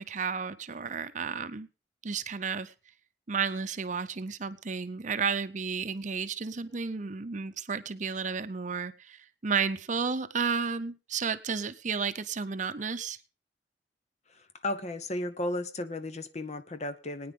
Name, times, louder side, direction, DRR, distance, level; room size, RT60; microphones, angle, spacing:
voice 1, 0.0-1.7 2.0-2.7 3.3-13.2, right 5 dB, 45° right, 12 dB, 0.7 m, -32 dB
voice 2, 14.3-17.3, left 1 dB, 40° left, 11 dB, 0.9 m, -34 dB
21.5 x 9.5 x 3.7 m, 0.33 s
head